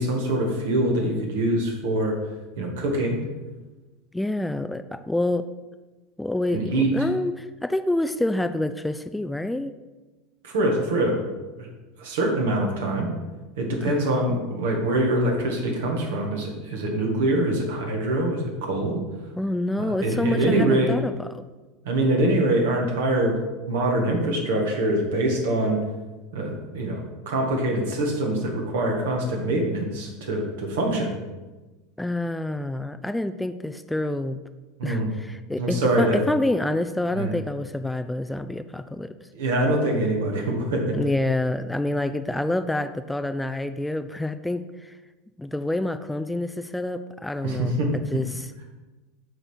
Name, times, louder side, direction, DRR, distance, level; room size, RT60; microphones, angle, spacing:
voice 1, 0.0-2.1 2.6-3.2 6.5-6.9 10.4-11.2 11.6-11.7 12.0-13.1 13.6-19.0 19.8-20.9 21.8-23.4 23.7-25.8 26.3-31.2 34.8-35.1 35.6-36.2 37.1-37.3 39.3-41.0 47.4-47.9, right 1 dB, 75° right, 1 dB, 1.8 m, -24 dB
voice 2, 4.1-5.5 6.2-9.7 13.8-14.0 19.4-21.4 32.0-34.4 34.8-39.1 40.9-44.9 45.4-48.5, left 1 dB, 5° left, 10 dB, 0.4 m, -27 dB
7.8 x 3.9 x 6.2 m, 1.2 s
hypercardioid pair, 85°, 0 cm